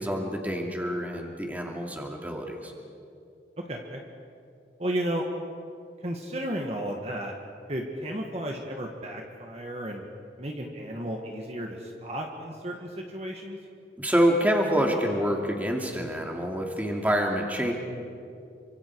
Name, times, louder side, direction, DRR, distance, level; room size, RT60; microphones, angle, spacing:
voice 1, 0.0-2.7 14.0-17.7, equal, 10° right, 1 dB, 2.4 m, -27 dB
voice 2, 3.7-4.0 4.8-5.2 6.0-7.3 7.7-10.0 10.4-13.6, right 1 dB, 35° right, 1 dB, 1.7 m, -33 dB
29.0 x 25.0 x 4.8 m, 2.6 s
head